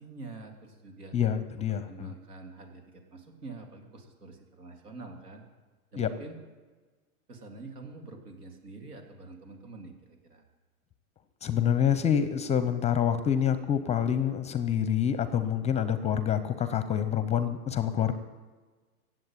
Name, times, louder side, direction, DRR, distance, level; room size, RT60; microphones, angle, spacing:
voice 1, 0.0-1.1 1.7-5.4 5.9-6.4 7.3-10.5, right 3 dB, 90° right, 3 dB, 3.4 m, -46 dB
voice 2, 1.1-2.1 6.0-6.1 11.4-18.1, left 9 dB, 15° left, 12 dB, 0.6 m, -27 dB
16.0 x 7.7 x 9.0 m, 1.3 s
hypercardioid pair, 125°, 45 cm